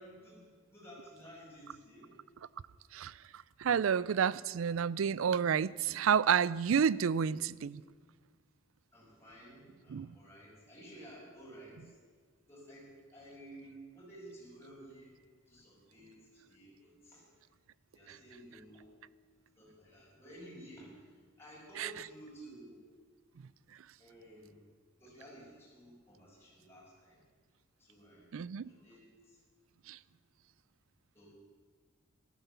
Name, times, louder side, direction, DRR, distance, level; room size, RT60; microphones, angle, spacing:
voice 1, 0.0-2.1 8.9-12.0 12.5-15.2 15.5-17.2 17.9-18.9 19.6-22.8 24.0-24.6 25.0-27.2 27.8-29.4 30.0-30.1 31.1-31.4, right 1 dB, 10° left, 6.1 m, -53 dB
voice 2, 3.6-7.8 9.9-10.1 21.8-21.9 28.3-28.7 29.9-30.0, right 7 dB, 85° right, 0.4 m, -30 dB
13.5 x 13.0 x 6.9 m
head